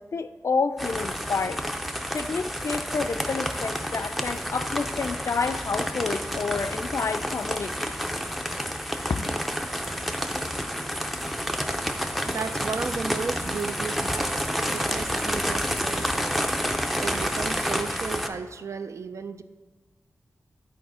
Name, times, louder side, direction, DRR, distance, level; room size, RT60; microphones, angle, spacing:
voice 1, 0.0-1.6 2.1-7.9 9.1-9.3, left 4 dB, 55° left, 10 dB, 0.4 m, -29 dB
sound 1, 0.8-18.3, equal, ahead, 0.5 m, -29 dB
voice 2, 12.3-19.4, right 5 dB, 60° right, 10 dB, 0.4 m, -35 dB
10.5 x 4.2 x 4.8 m, 1.3 s
wide cardioid pair, 100°, 6 cm